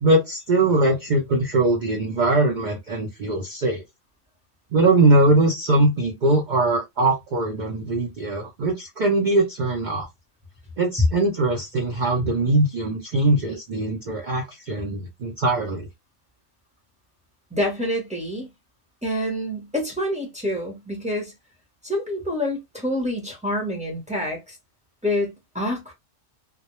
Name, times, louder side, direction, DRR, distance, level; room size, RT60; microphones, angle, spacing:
voice 1, 0.0-3.8 4.7-10.1 10.8-15.9, right 2 dB, 55° right, 0.5 m, -21 dB
voice 2, 17.5-18.5 19.0-21.3 21.8-24.6 25.0-25.9, left 1 dB, 5° right, 0.6 m, -27 dB
2.2 x 2.1 x 2.9 m
omnidirectional pair, 1.3 m